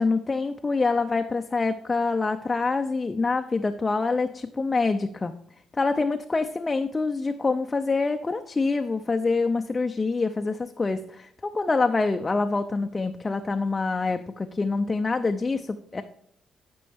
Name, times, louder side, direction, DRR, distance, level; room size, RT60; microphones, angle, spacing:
voice 1, 0.0-5.3 5.7-16.0, left 3 dB, 25° left, 6 dB, 0.5 m, -26 dB
11.5 x 5.3 x 3.5 m, 0.68 s
cardioid pair, 90°, 0 cm